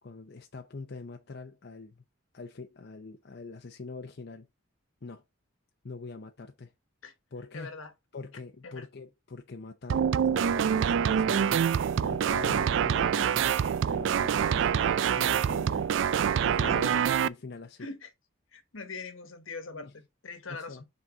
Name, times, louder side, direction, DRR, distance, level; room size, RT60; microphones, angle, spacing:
voice 1, 0.0-2.0 2.3-4.5 5.0-5.2 5.8-6.7 7.3-7.7 8.1-11.6 12.0-13.6 13.8-15.9 16.4-17.9 19.7-19.9 20.5-20.8, left 3 dB, 55° left, 0.6 m, -44 dB
voice 2, 7.5-7.9 8.6-8.9 16.6-17.1 17.8-18.1 18.5-20.9, left 4 dB, 75° left, 1.3 m, -42 dB
sound 1, 9.9-17.3, right 8 dB, 60° right, 0.3 m, -26 dB
6.1 x 4.1 x 4.3 m
head